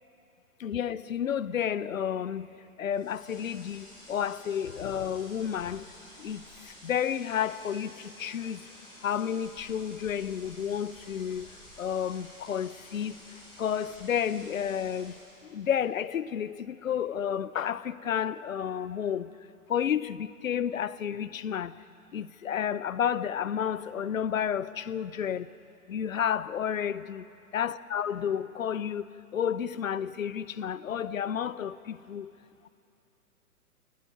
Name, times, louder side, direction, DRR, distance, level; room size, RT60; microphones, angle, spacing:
voice 1, 0.6-5.8 6.2-8.6 9.0-15.1 15.4-19.4 19.7-21.8 22.1-25.5 25.9-27.3 27.5-32.3, left 8 dB, 60° left, 0.8 m, -31 dB
sound 1, 2.9-15.4, left 1 dB, 10° left, 5.7 m, -51 dB
25.5 x 20.0 x 5.3 m
figure-of-eight pair, 120°, 45 cm